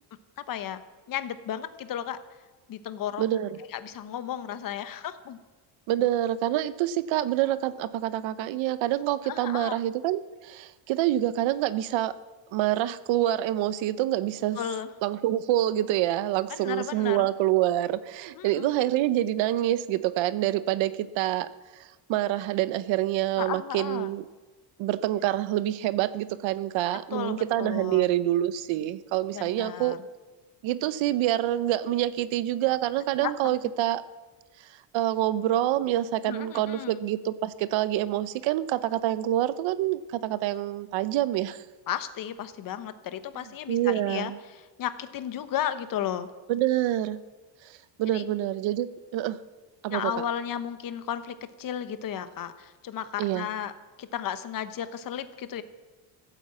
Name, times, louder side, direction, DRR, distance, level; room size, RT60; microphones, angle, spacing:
voice 1, 0.4-0.8 1.1-2.2 2.7-3.2 3.7-5.4 9.2-9.8 14.6-14.9 16.5-17.3 18.3-18.9 23.4-24.1 27.1-28.1 29.3-30.0 33.2-33.6 36.3-37.0 41.9-46.3 48.1-48.3 49.9-53.7 54.0-55.6, left 10 dB, 45° left, 12 dB, 0.9 m, -34 dB
voice 2, 3.2-3.6 5.9-12.1 12.5-14.6 15.0-21.5 21.7-24.2 24.8-30.0 30.6-34.0 34.9-41.6 43.7-44.4 46.5-47.2 47.6-48.9 49.1-49.4 49.8-50.1 53.2-53.5, right 13 dB, 70° right, 15 dB, 0.8 m, -26 dB
15.0 x 8.7 x 7.4 m, 1.2 s
cardioid pair, 150°, 48 cm